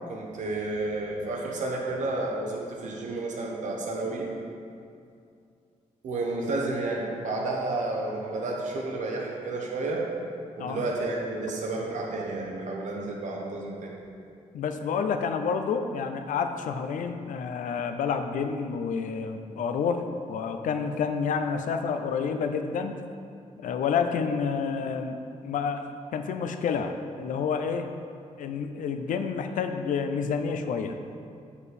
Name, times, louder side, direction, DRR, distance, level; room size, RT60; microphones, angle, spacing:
voice 1, 0.1-4.3 6.0-10.1 10.6-14.0, right 2 dB, 75° right, -2 dB, 1.0 m, -31 dB
voice 2, 14.5-23.0 23.6-25.2 25.4-25.8 26.1-27.9 28.4-31.0, left 6 dB, 90° left, 7 dB, 0.6 m, -29 dB
7.2 x 6.8 x 4.3 m, 2.4 s
wide cardioid pair, 120°, 13 cm